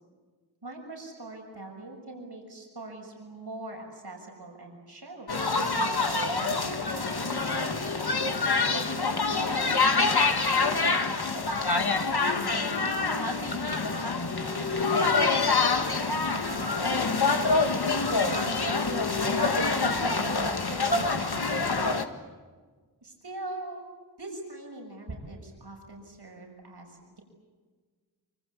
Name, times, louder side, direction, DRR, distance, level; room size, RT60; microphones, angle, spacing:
voice 1, 0.6-7.9 8.7-11.6 12.3-20.4 20.7-21.7 23.0-23.8 24.2-27.2, right 2 dB, 75° right, 1 dB, 6.6 m, -43 dB
sound 1, 5.3-22.0, left 3 dB, 65° left, 2.0 m, -26 dB
26.5 x 25.5 x 8.5 m, 1.5 s
wide cardioid pair, 50°, 40 cm